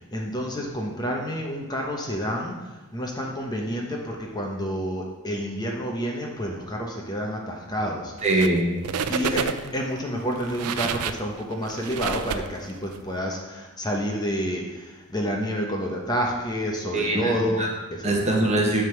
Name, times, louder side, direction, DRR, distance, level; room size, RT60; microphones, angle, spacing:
voice 1, 0.0-8.1 9.1-18.1, equal, 20° left, 0 dB, 0.9 m, -29 dB
voice 2, 8.2-8.7 16.9-17.7 18.0-18.8, right 2 dB, 30° right, -1 dB, 1.2 m, -22 dB
sound 1, 8.2-8.6 8.8-9.8 10.3-13.0, right 6 dB, 85° right, 0.5 m, -29 dB
9.5 x 3.7 x 5.9 m, 1.1 s
head